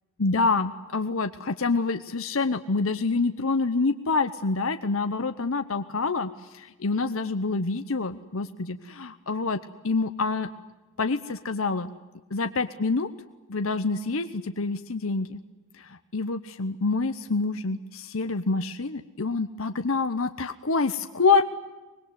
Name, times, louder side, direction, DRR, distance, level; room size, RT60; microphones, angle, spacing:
voice 1, 0.2-10.5 11.0-11.9 12.3-13.1 13.5-15.4 15.8-21.4, left 3 dB, 75° left, 9 dB, 1.0 m, -27 dB
25.0 x 21.0 x 9.3 m, 1.2 s
head